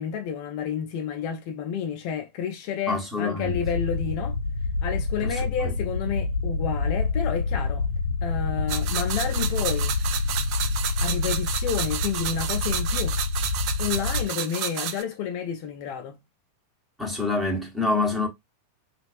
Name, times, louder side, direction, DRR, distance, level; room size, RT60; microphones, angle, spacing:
voice 1, 0.0-4.3 4.8-7.9 8.2-10.0 11.0-13.2 13.8-16.2, left 8 dB, 45° left, 0.4 m, -30 dB
voice 2, 2.9-3.6 5.3-5.7 17.0-18.3, left 3 dB, 5° right, 1.2 m, -26 dB
sound 1, 3.4-14.2, left 3 dB, 85° left, 0.7 m, -27 dB
sound 2, 8.7-15.0, right 10 dB, 45° right, 0.3 m, -31 dB
3.1 x 2.5 x 2.4 m
figure-of-eight pair, 90°, 0 cm